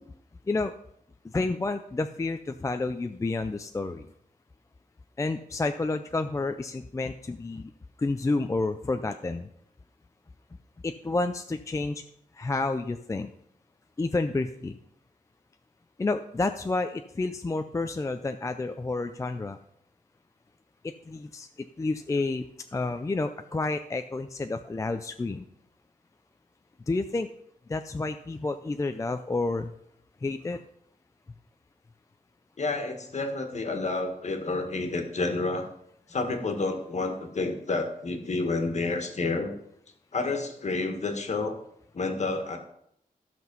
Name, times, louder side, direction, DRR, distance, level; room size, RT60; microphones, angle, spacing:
voice 1, 1.2-4.1 5.2-7.7 8.0-9.5 10.8-12.0 12.3-13.3 14.0-14.8 16.0-19.6 20.8-22.4 22.7-25.4 26.9-27.3 27.7-29.7 30.2-30.6, left 3 dB, 20° left, 7 dB, 0.4 m, -30 dB
voice 2, 32.6-35.7 36.1-39.5 40.1-41.6 41.9-42.6, left 3 dB, 50° left, 5 dB, 1.6 m, -29 dB
13.5 x 6.1 x 5.4 m, 0.72 s
wide cardioid pair, 150°, 15 cm